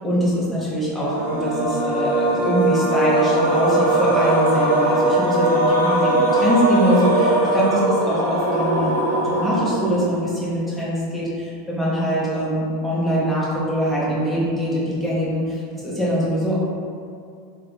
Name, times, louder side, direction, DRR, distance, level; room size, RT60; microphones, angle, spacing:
voice 1, 0.0-7.8 8.1-15.4 15.8-16.5, equal, ahead, -9 dB, 1.2 m, -23 dB
sound 1, 0.9-10.3, right 2 dB, 75° right, 0.9 m, -20 dB
3.2 x 2.3 x 3.8 m, 2.4 s
figure-of-eight pair, 85°, 0 cm